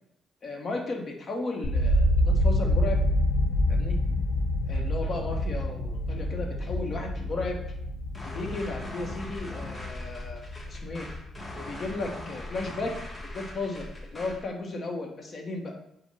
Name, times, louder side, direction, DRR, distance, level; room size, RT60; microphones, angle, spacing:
voice 1, 0.4-3.0 3.7-4.0 4.7-7.8 8.3-10.4 10.7-11.1 11.5-12.9 13.3-13.8 14.1-15.8, left 3 dB, 45° left, 2 dB, 0.9 m, -34 dB
sound 1, 1.6-11.6 11.9-12.6, left 1 dB, 70° left, 0.5 m, -27 dB
sound 2, 8.1-14.5, left 1 dB, 20° left, 0.8 m, -40 dB
4.9 x 2.0 x 4.7 m, 0.75 s
cardioid pair, 90°, 0 cm